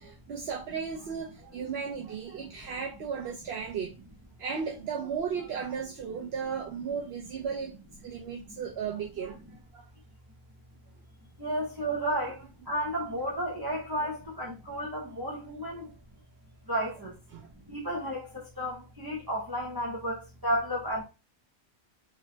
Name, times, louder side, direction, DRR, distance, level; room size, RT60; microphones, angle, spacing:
voice 1, 0.0-4.0 4.4-9.8 15.8-15.9 17.3-17.5, right 6 dB, 75° right, 0.9 m, -35 dB
voice 2, 11.4-15.9 16.7-17.2 17.7-21.0, equal, 25° right, 0.8 m, -32 dB
3.8 x 3.1 x 2.7 m
omnidirectional pair, 1.1 m